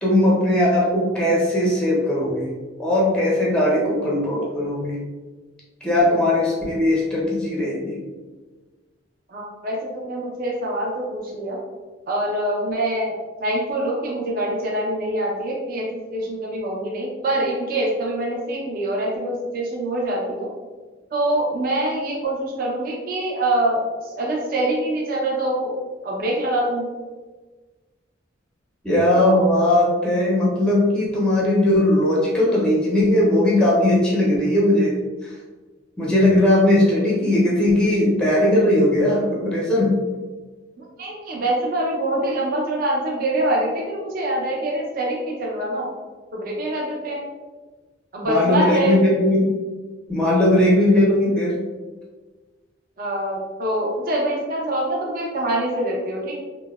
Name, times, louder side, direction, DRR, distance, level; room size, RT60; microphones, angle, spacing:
voice 1, 0.0-2.5 2.8-5.0 5.8-8.0 28.8-35.0 36.0-40.0 48.3-49.4 50.1-51.6, left 1 dB, 5° left, -5 dB, 0.5 m, -18 dB
voice 2, 9.3-11.6 12.1-13.1 13.4-20.5 21.1-25.7 26.0-26.9 41.0-45.9 46.3-47.2 48.1-49.0 53.0-56.4, right 1 dB, 45° right, -3 dB, 0.5 m, -24 dB
2.7 x 2.0 x 2.2 m, 1.3 s
head